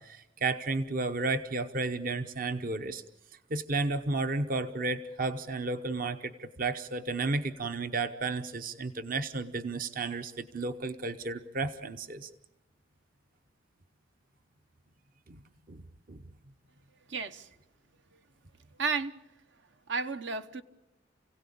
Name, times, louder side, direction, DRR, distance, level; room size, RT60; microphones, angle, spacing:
voice 1, 0.0-3.0 3.5-12.3 15.3-15.4 15.7-15.8 16.1-16.2, right 3 dB, 45° right, 0.9 m, -33 dB
voice 2, 17.1-17.5 18.8-19.2 19.9-20.6, right 4 dB, 70° right, 1.1 m, -32 dB
29.0 x 17.0 x 8.6 m
head